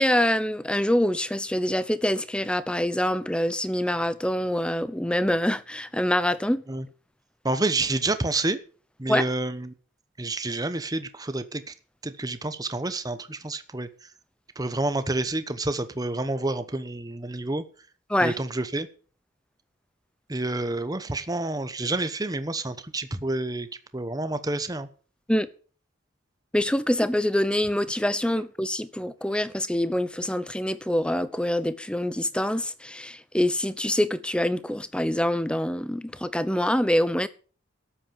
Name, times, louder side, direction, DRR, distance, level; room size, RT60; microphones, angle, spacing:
voice 1, 0.0-6.6 9.1-9.3 18.1-18.4 25.3-25.5 26.5-37.3, left 1 dB, 5° left, 0.8 m, -25 dB
voice 2, 7.4-8.6 9.0-9.7 10.2-11.6 12.0-13.9 14.6-17.6 18.2-18.9 20.3-23.7 23.9-24.9, right 2 dB, 20° right, 0.9 m, -28 dB
13.0 x 8.7 x 7.4 m
head